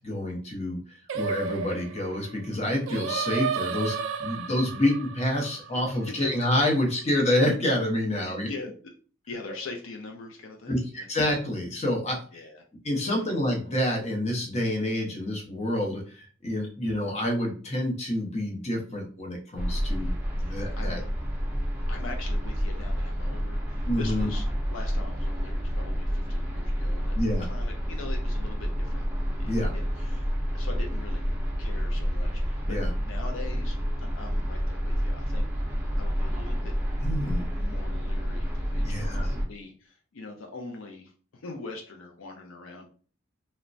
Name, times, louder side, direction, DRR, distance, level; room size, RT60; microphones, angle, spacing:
voice 1, 0.0-8.5 10.7-12.4 12.8-21.0 23.8-24.3 27.1-27.5 29.5-29.7 32.7-32.9 37.0-37.5 38.8-39.4, left 1 dB, 30° left, 0 dB, 0.7 m, -28 dB
Singing, 1.1-6.4, right 6 dB, 65° right, 0.3 m, -33 dB
voice 2, 5.7-6.3 8.2-8.9 9.3-11.1 12.3-12.6 13.1-13.2 20.4-21.1 21.9-24.5 24.7-27.2 27.4-29.1 29.4-30.3 30.5-31.2 31.6-35.5 36.0-36.8 37.5-42.9, left 3 dB, 70° left, 2 dB, 0.4 m, -42 dB
sound 1, 19.6-39.5, equal, 10° right, 0.5 m, -29 dB
3.0 x 2.1 x 2.5 m, 0.40 s
head